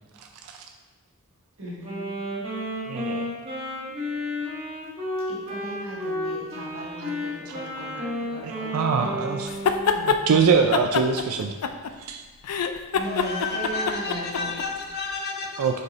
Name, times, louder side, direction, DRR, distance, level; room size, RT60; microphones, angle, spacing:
voice 1, 1.6-2.1 5.3-9.3 12.9-14.5, right 1 dB, 65° right, 1.8 m, -37 dB
Wind instrument woodwind instrument, 1.8-10.0, left 1 dB, 30° right, 1.3 m, -32 dB
voice 2, 2.9-3.3 8.4-9.5 9.9-11.5 12.0-12.2 15.6-15.8, right 5 dB, 80° right, 0.4 m, -23 dB
sound 1, 9.5-10.2 10.7-12.1 12.4-14.6, left 6 dB, 90° left, 0.4 m, -24 dB
voice 3, 13.1-15.8, left 4 dB, 45° left, 0.7 m, -31 dB
5.1 x 4.7 x 4.0 m
head